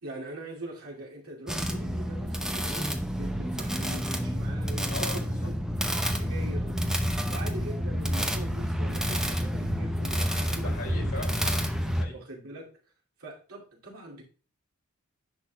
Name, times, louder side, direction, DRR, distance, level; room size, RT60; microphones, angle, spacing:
voice 1, 0.0-5.5 5.9-11.1 12.1-12.7 13.2-14.2, right 1 dB, 75° right, -3 dB, 2.5 m, -43 dB
sound 1, 1.5-12.0, equal, 5° right, 0.7 m, -29 dB
voice 2, 4.9-5.5 10.5-12.2, left 2 dB, 65° left, 2 dB, 2.5 m, -40 dB
10.5 x 6.2 x 2.3 m, 0.36 s
head